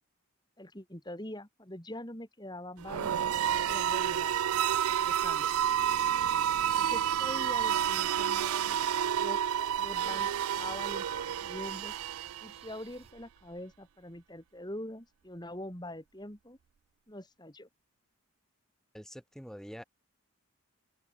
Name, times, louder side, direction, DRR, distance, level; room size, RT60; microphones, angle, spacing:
voice 1, 0.6-3.2 3.6-4.4 5.0-5.5 6.7-9.4 9.8-10.3 10.5-11.9 12.4-16.6 17.1-17.7, left 1 dB, 20° left, 3.4 m, -44 dB
sound 1, 2.8-12.7, right 9 dB, 90° right, 0.4 m, -30 dB
sound 2, 7.2-13.1, right 5 dB, 25° right, 2.8 m, -55 dB
voice 2, 18.9-19.8, equal, ahead, 5.7 m, -45 dB
open air
head